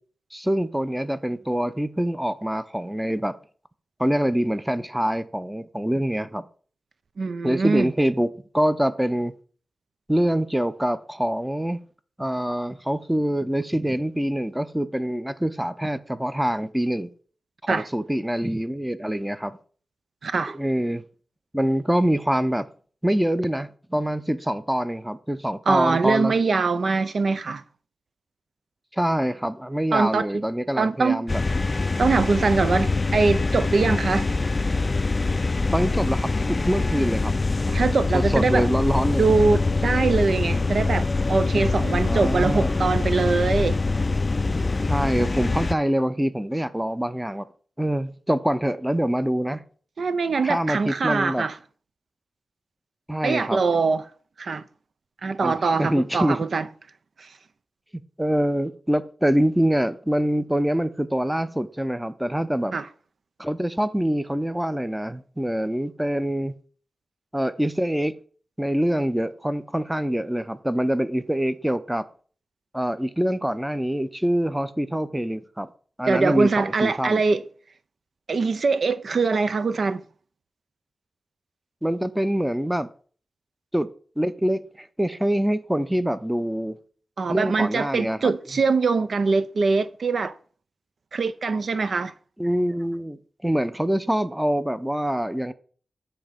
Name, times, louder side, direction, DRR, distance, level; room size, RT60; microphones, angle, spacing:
voice 1, 0.3-3.3 4.0-6.5 7.4-8.3 8.5-9.3 10.1-11.8 12.2-17.1 17.6-19.6 20.5-21.0 21.5-22.7 23.0-26.3 28.9-31.4 35.7-37.3 38.1-39.3 42.0-42.7 44.8-47.5 47.8-49.6 50.4-51.4 53.1-53.6 55.4-56.4 58.2-62.7 63.4-66.5 67.3-68.1 68.6-72.0 72.7-75.7 76.0-77.2 81.8-82.9 83.7-83.9 84.2-86.8 87.3-88.3 92.4-93.2 93.4-95.5, equal, 10° right, 0.6 m, -25 dB
voice 2, 7.2-7.9 17.7-17.9 20.2-20.6 25.7-27.6 29.9-30.4 30.8-31.3 32.0-34.3 37.7-38.7 39.2-43.8 50.0-51.6 53.2-54.0 54.4-54.6 55.2-56.6 57.2-57.3 62.7-62.9 76.1-77.4 78.3-80.0 87.2-90.3 91.1-92.1, right 4 dB, 65° right, 0.4 m, -23 dB
sound 1, 31.3-45.7, left 3 dB, 35° left, 0.3 m, -24 dB
9.3 x 3.3 x 5.1 m
cardioid pair, 60°, 0 cm